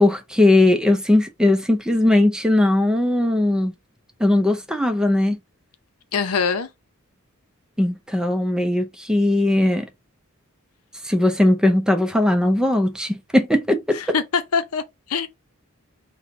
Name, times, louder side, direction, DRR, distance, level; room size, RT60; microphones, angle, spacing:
voice 1, 0.0-3.7 4.2-5.4 7.8-9.9 11.0-14.0, left 1 dB, 5° right, 0.6 m, -19 dB
voice 2, 6.1-6.7 14.1-15.3, left 5 dB, 85° left, 0.7 m, -23 dB
4.3 x 2.3 x 4.0 m
head